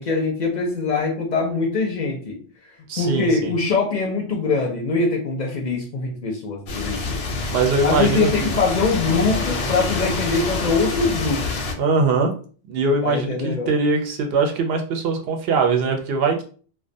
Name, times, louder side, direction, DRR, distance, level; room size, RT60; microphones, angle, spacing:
voice 1, 0.0-2.4 3.0-7.2 7.8-11.5 13.0-13.7, left 4 dB, 55° left, 1 dB, 0.5 m, -23 dB
voice 2, 2.9-3.5 7.5-8.5 11.8-12.3 12.7-16.4, right 4 dB, 75° right, 3 dB, 0.8 m, -21 dB
sound 1, 6.7-11.7, left 3 dB, 90° left, 0.8 m, -26 dB
2.3 x 2.2 x 2.6 m, 0.41 s
omnidirectional pair, 1.0 m